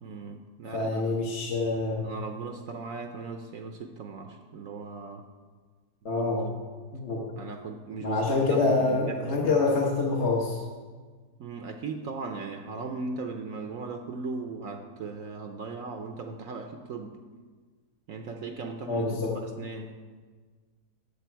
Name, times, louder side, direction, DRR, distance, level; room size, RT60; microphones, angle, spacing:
voice 1, 0.0-1.0 2.0-5.3 6.0-6.1 6.3-6.5 7.4-9.6 11.4-17.2 18.1-19.9, right 4 dB, 65° right, 5 dB, 1.0 m, -38 dB
voice 2, 0.7-2.1 6.0-6.5 6.9-7.3 8.0-10.6 18.9-19.3, left 3 dB, 50° left, -3 dB, 1.3 m, -26 dB
13.0 x 6.8 x 4.5 m, 1.5 s
omnidirectional pair, 1.7 m